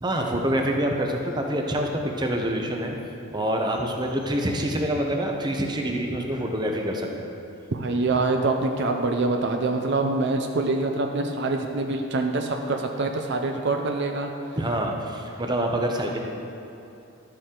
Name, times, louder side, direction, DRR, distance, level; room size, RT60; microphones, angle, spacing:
voice 1, 0.0-3.0 3.3-7.3 14.6-16.2, right 1 dB, 20° right, 1 dB, 0.7 m, -26 dB
voice 2, 7.7-14.3, right 3 dB, 55° right, 4 dB, 0.5 m, -25 dB
12.0 x 6.7 x 3.8 m, 2.8 s
head